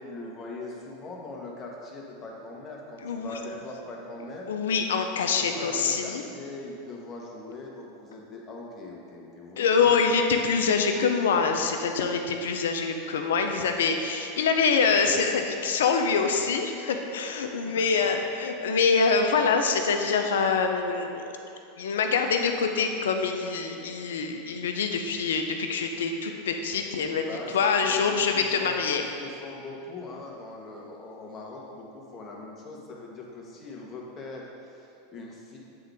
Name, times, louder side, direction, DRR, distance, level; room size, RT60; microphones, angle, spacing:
voice 1, 0.0-4.5 5.3-10.0 17.6-18.2 27.2-28.8 29.2-35.6, left 2 dB, 35° left, -1 dB, 1.2 m, -41 dB
voice 2, 3.0-3.4 4.5-6.2 9.6-21.2 21.8-27.3 27.5-29.1, left 5 dB, 80° left, 5 dB, 0.5 m, -25 dB
8.5 x 3.8 x 3.5 m, 2.7 s
hypercardioid pair, 105°, 0 cm